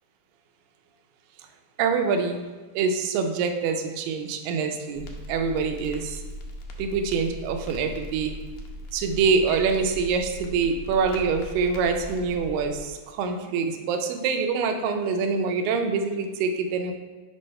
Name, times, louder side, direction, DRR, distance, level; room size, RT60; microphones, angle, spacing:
voice 1, 1.8-2.4 2.7-6.2 6.8-8.3 8.9-16.9, right 5 dB, 80° right, 5 dB, 2.3 m, -25 dB
Crackle, 5.0-12.8, equal, 75° left, 2.0 m, -39 dB
6.9 x 3.2 x 5.4 m, 1.3 s
omnidirectional pair, 4.0 m